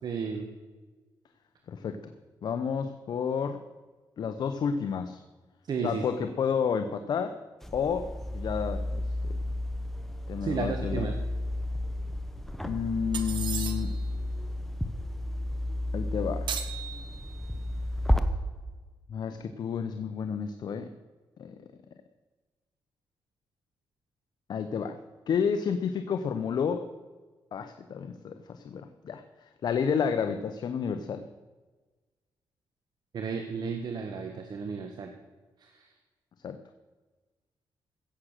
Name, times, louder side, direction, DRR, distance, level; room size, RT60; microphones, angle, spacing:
voice 1, 0.0-0.5 5.7-6.0 10.4-11.1 33.1-35.1 35.7-35.8, right 5 dB, 60° right, 4 dB, 1.4 m, -33 dB
voice 2, 1.7-2.1 2.4-3.6 4.2-5.2 5.8-7.4 7.7-9.0 10.3-11.1 12.6-14.0 15.9-16.5 19.1-20.9 21.4-21.6 24.5-25.0 25.3-26.9 27.5-31.2 36.4-36.6, left 6 dB, 65° left, 8 dB, 0.9 m, -31 dB
sound 1, 7.6-18.2, left 1 dB, 5° left, 1.1 m, -32 dB
sound 2, 13.1-14.1 16.5-17.6, right 8 dB, 80° right, 1.3 m, -37 dB
16.0 x 7.6 x 6.6 m, 1.3 s
cardioid pair, 100°, 8 cm